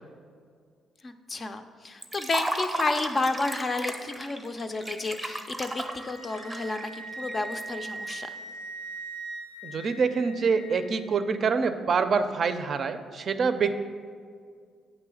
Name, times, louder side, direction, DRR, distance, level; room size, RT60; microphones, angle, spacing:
voice 1, 1.0-8.3, left 3 dB, 35° left, 8 dB, 0.5 m, -31 dB
Liquid, 2.0-8.1, right 1 dB, 10° right, 0.7 m, -35 dB
Wind instrument woodwind instrument, 5.2-11.1, right 2 dB, 85° left, 0.6 m, -41 dB
voice 2, 9.6-13.7, right 5 dB, 50° right, 9 dB, 0.5 m, -26 dB
8.4 x 3.1 x 6.2 m, 2.1 s
cardioid pair, 90°, 0 cm